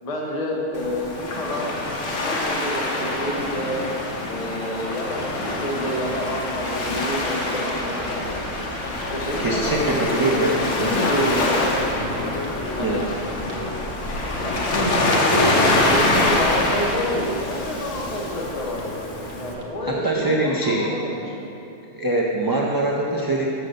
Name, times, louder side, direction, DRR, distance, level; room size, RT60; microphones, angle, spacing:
voice 1, 0.0-1.7 2.2-3.8 4.3-8.2 9.1-11.7 12.3-13.0 14.4-18.8 19.4-21.4, equal, 35° left, -1 dB, 0.9 m, -28 dB
Waves surf, 0.7-19.5, left 2 dB, 90° left, 1.3 m, -25 dB
sound 1, 5.9-19.7, right 1 dB, 45° right, 0.9 m, -39 dB
sound 2, 8.2-19.5, left 3 dB, 70° left, 0.9 m, -39 dB
voice 2, 9.4-10.6 12.8-13.0 19.8-20.9 21.9-23.4, right 2 dB, 30° right, -2 dB, 0.4 m, -23 dB
6.6 x 5.8 x 6.5 m, 2.8 s
omnidirectional pair, 1.2 m